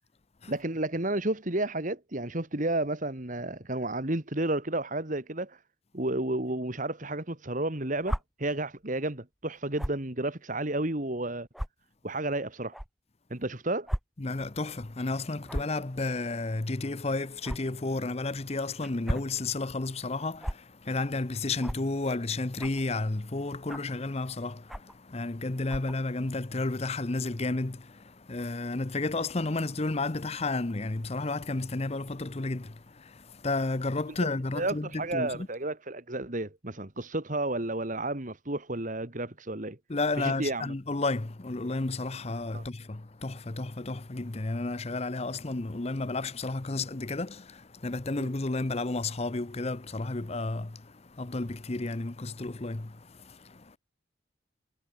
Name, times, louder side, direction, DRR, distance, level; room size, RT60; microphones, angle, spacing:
voice 1, 0.5-5.6 5.9-11.5 12.0-12.8 13.3-13.9 34.6-39.8 40.2-40.7 42.5-42.6 48.2-48.3, right 2 dB, 40° right, 2.0 m, -32 dB
sound 1, 8.0-8.2 9.8-10.0 10.8-10.9 11.5-11.7 12.7-12.9 13.9-14.0 14.3-14.5 15.5-15.8 17.4-17.6 18.8-19.3 20.4-20.6 21.6-21.8 22.6-22.8 23.7-23.9 24.7-25.0 25.7-25.9, equal, ahead, 0.4 m, -33 dB
voice 2, 14.2-35.5 39.9-53.8, left 2 dB, 30° left, 0.8 m, -32 dB
head